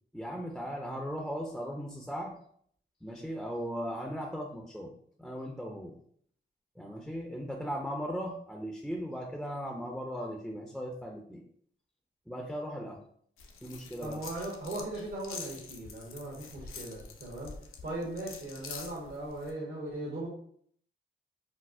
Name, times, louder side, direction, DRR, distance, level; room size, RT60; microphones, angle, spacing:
voice 1, 0.1-2.3 3.0-4.9 5.2-5.9 6.8-11.4 12.3-13.0 13.6-14.2, equal, ahead, 1 dB, 0.4 m, -37 dB
sound 1, 13.4-19.5, left 5 dB, 85° left, 0.5 m, -46 dB
voice 2, 14.0-17.5 17.8-20.3, right 1 dB, 65° right, -6 dB, 1.0 m, -38 dB
4.1 x 2.0 x 2.5 m, 0.62 s
cardioid pair, 60°, 21 cm